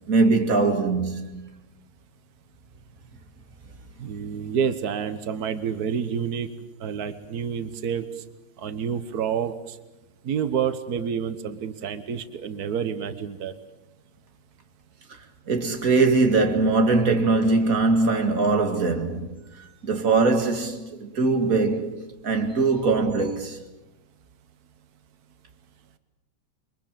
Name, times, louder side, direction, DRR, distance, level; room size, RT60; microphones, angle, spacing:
voice 1, 0.1-1.5 15.5-19.4 19.8-23.6, right 3 dB, 30° right, 2.2 m, -22 dB
voice 2, 4.0-6.5 6.8-8.1 8.6-9.8 10.2-13.5, right 7 dB, 80° right, 0.8 m, -28 dB
28.5 x 23.0 x 7.5 m
omnidirectional pair, 3.3 m